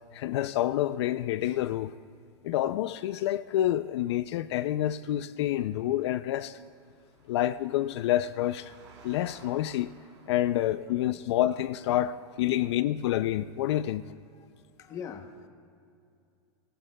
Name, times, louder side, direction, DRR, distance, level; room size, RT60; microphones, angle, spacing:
voice 1, 0.1-1.9 2.4-6.6 7.3-8.7 9.0-9.9 10.3-14.1, left 13 dB, 70° left, 0.4 m, -28 dB
Engine, 5.4-11.1, right 4 dB, 85° right, 3.6 m, -58 dB
voice 2, 14.8-15.5, left 7 dB, 25° left, 0.8 m, -43 dB
18.0 x 17.5 x 2.2 m
supercardioid pair, 155°, 15 cm